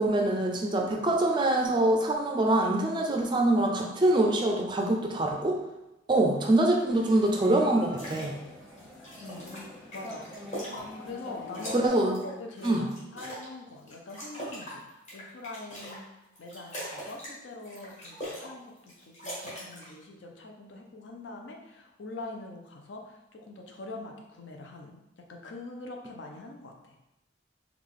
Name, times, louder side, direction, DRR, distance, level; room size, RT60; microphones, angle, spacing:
voice 1, 0.0-5.6 6.1-8.3 11.7-12.1 12.6-12.9, right 1 dB, 25° right, 1 dB, 0.4 m, -24 dB
sound 1, 6.9-11.9, left 2 dB, 5° left, 0.8 m, -45 dB
sound 2, 7.8-8.3 8.7-11.3 11.5-13.5 13.9-16.0 16.3-17.3 17.6-18.5 18.8-19.9, equal, 40° left, 1.4 m, -41 dB
voice 2, 9.9-10.3 11.0-11.8 12.0-16.1 16.4-25.0 25.3-26.9, left 2 dB, 70° left, 2 dB, 0.5 m, -43 dB
3.3 x 2.4 x 3.6 m, 0.92 s
head